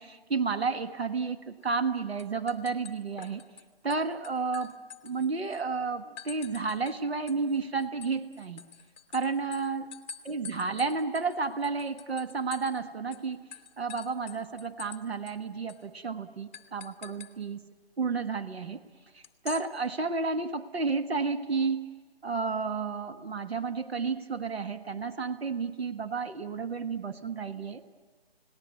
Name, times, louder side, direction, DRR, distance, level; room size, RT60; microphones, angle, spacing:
voice 1, 0.0-3.5 3.8-4.8 5.0-8.6 9.1-9.9 10.2-13.4 13.8-17.6 18.0-18.8 19.4-21.8 22.2-27.9, right 4 dB, 85° right, 8 dB, 1.6 m, -31 dB
sound 1, 1.6-1.9 2.2-3.6 3.9-5.6 6.2-7.0 7.3-12.8 13.1-13.2 13.5-15.0 15.3-15.4 15.7-15.9 16.5-17.3 19.2-19.7, left 8 dB, 15° left, 0.8 m, -46 dB
29.5 x 18.5 x 8.3 m, 1.4 s
hypercardioid pair, 165°, 31 cm